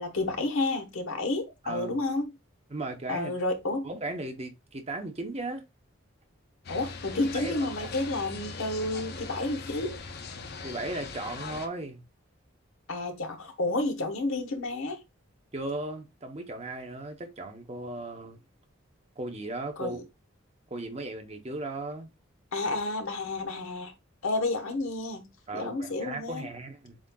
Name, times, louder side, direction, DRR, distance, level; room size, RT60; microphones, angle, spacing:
voice 1, 0.0-2.3 3.1-3.9 6.7-10.0 12.9-15.0 19.8-20.0 22.5-23.9 24.2-26.5, left 2 dB, 85° left, 1.1 m, -31 dB
voice 2, 1.6-2.0 2.7-3.3 3.8-5.6 7.3-7.9 10.6-12.0 15.5-18.4 19.2-20.0 20.7-22.1 25.5-27.0, right 2 dB, 30° right, 0.7 m, -36 dB
sound 1, 6.6-11.7, left 4 dB, 50° left, 0.5 m, -40 dB
7.3 x 2.5 x 2.2 m
head